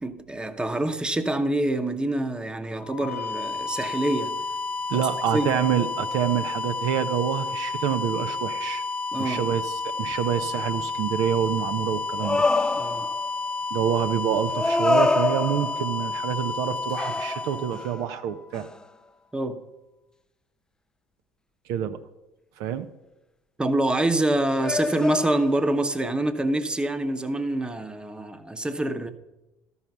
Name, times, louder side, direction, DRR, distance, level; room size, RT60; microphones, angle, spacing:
voice 1, 0.0-4.4 4.9-5.1 5.3-5.5 9.1-9.5 12.7-13.1 19.3-19.6 23.6-29.1, right 1 dB, 15° right, 0.9 m, -26 dB
sound 1, 2.8-18.6, left 4 dB, 25° left, 0.9 m, -31 dB
voice 2, 4.9-8.8 9.2-12.5 13.7-18.7 21.7-22.0 22.6-22.9, right 9 dB, 70° right, 0.5 m, -27 dB
sound 2, 12.2-13.3 14.5-16.1 17.0-18.0 18.5-18.8 24.6-25.8, left 3 dB, 10° left, 0.4 m, -26 dB
12.5 x 5.6 x 5.9 m
hypercardioid pair, 65°, 7 cm